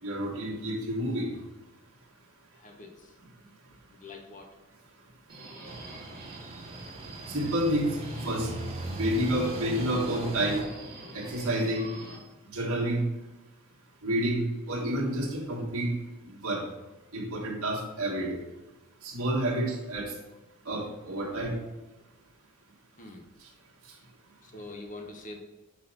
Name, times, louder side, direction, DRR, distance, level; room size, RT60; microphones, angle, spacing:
voice 1, 0.0-1.3 7.3-7.9 8.2-8.5 8.9-10.7 11.1-11.9 12.4-13.0 14.0-15.9 16.3-16.6 17.1-18.4 19.0-20.1 20.6-21.5, right 1 dB, 75° right, -3 dB, 1.6 m, -29 dB
voice 2, 2.5-3.2 3.9-4.6 23.0-23.2 24.4-25.4, left 2 dB, 35° left, 3 dB, 0.9 m, -44 dB
Subway metro underground, 5.3-12.2, right 2 dB, 45° right, 1.8 m, -46 dB
sound 1, 5.6-10.6, right 2 dB, 30° right, 0.6 m, -38 dB
5.6 x 4.3 x 5.4 m, 1.1 s
head